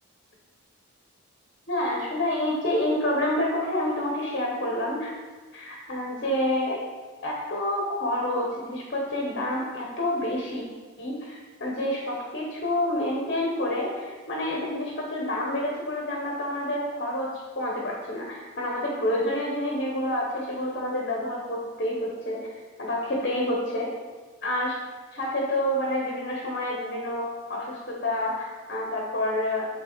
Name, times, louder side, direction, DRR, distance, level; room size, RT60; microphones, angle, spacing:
voice 1, 1.7-5.1 5.5-6.8 7.2-10.6 11.0-22.5 22.8-23.9 24.4-24.8 25.1-29.7, left 1 dB, 45° left, -2 dB, 1.1 m, -28 dB
7.5 x 3.7 x 4.0 m, 1.4 s
head